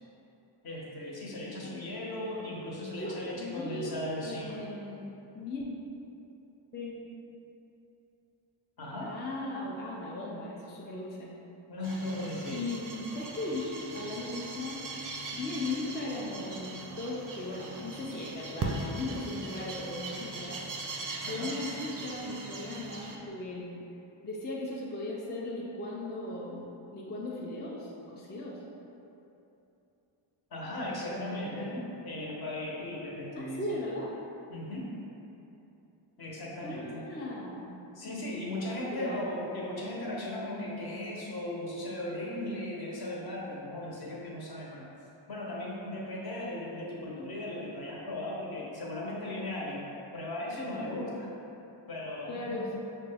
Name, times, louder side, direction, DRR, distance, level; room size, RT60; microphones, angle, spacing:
voice 1, 0.6-4.6 8.8-9.1 11.7-12.6 21.2-21.5 30.5-33.8 34.5-34.9 36.2-37.0 37.9-44.8 45.3-49.8 50.1-51.3 51.9-52.7, left 1 dB, 50° left, -4 dB, 0.8 m, -37 dB
voice 2, 1.5-2.5 3.0-3.9 4.2-5.6 6.7-7.0 9.0-11.3 12.5-14.9 15.3-20.6 21.2-23.8 24.2-28.6 31.1-31.7 33.3-34.2 36.6-37.7 38.9-39.2 52.3-52.7, left 2 dB, 25° left, -5 dB, 0.3 m, -38 dB
sound 1, 11.8-23.2, right 3 dB, 40° right, 0.4 m, -40 dB
5.8 x 2.2 x 3.3 m, 2.9 s
wide cardioid pair, 160°, 49 cm